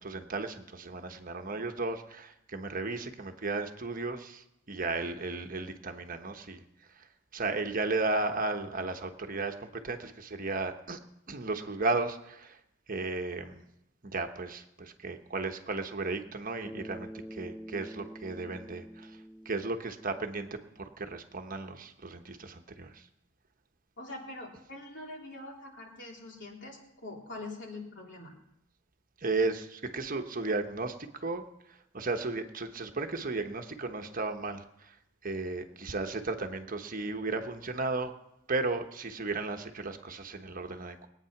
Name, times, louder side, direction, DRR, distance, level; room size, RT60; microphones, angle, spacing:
voice 1, 0.0-6.6 7.0-7.1 7.3-11.0 11.3-12.6 12.9-13.6 14.0-19.2 19.4-23.0 29.2-31.4 31.7-35.0 35.2-38.1 38.5-41.1, right 3 dB, 45° right, 6 dB, 1.1 m, -34 dB
Bass guitar, 16.6-21.0, equal, 10° left, 0.6 m, -47 dB
voice 2, 24.0-28.3, left 2 dB, 65° left, -1 dB, 3.6 m, -44 dB
21.5 x 9.1 x 5.9 m, 0.84 s
head